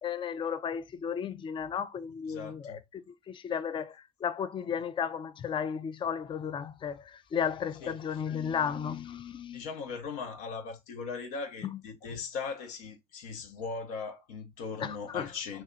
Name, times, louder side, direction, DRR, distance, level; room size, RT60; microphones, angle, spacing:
voice 1, 0.0-9.6 11.6-11.8 14.8-15.3, left 7 dB, 25° left, 0.4 m, -34 dB
voice 2, 2.3-2.8 7.8-8.4 9.5-15.6, left 5 dB, 75° left, 1.0 m, -39 dB
2.6 x 2.3 x 3.7 m
hypercardioid pair, 70°, 19 cm